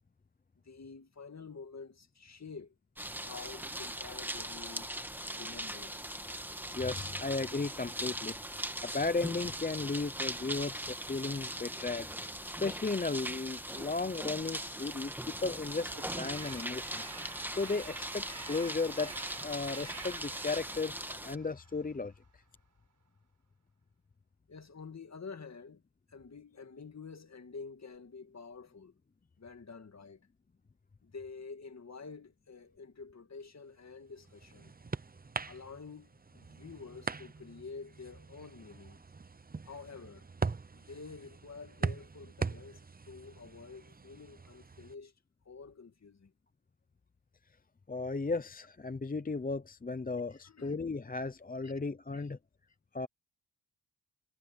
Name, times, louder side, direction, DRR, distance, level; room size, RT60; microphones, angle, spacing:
voice 1, 0.6-2.7 3.2-5.1 5.3-6.0 24.5-25.8 26.1-28.9 29.4-30.3 31.0-34.7 35.5-39.0 39.6-40.3 40.7-45.1 45.5-46.3 50.3-50.8 51.6-51.7 52.1-52.3, left 4 dB, 45° left, 2.0 m, -49 dB
sound 1, 3.0-21.3, right 1 dB, 5° right, 1.6 m, -40 dB
voice 2, 6.7-8.4 8.8-12.1 12.5-15.1 15.4-17.0 17.5-19.1 19.4-22.1 47.9-52.4 52.9-53.1, left 3 dB, 25° left, 0.7 m, -35 dB
Train, 14.7-22.1, right 4 dB, 55° right, 4.5 m, -50 dB
sound 2, 33.8-45.0, right 4 dB, 25° right, 0.7 m, -41 dB
wide cardioid pair, 85°, 36 cm